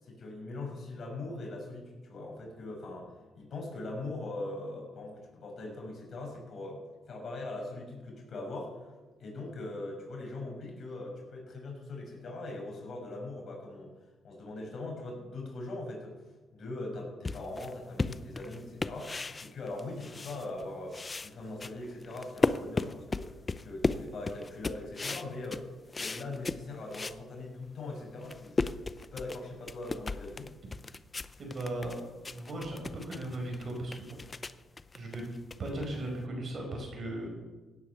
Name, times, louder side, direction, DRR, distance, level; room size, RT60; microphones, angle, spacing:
voice 1, 0.0-3.1 3.3-6.8 7.1-8.9 9.2-13.9 14.2-16.1 16.5-23.3 23.6-25.6 26.0-28.6 29.0-30.5, left 2 dB, 50° left, -1 dB, 6.6 m, -41 dB
sound 1, 17.2-20.6 20.9-27.2 27.7-27.8 28.1-36.2, left 3 dB, 25° left, 0.6 m, -35 dB
voice 2, 31.4-32.0 32.3-34.2 34.9-35.2 35.6-37.3, right 1 dB, 50° right, 1 dB, 5.2 m, -37 dB
16.5 x 9.6 x 6.8 m, 1.3 s
cardioid pair, 90°, 0 cm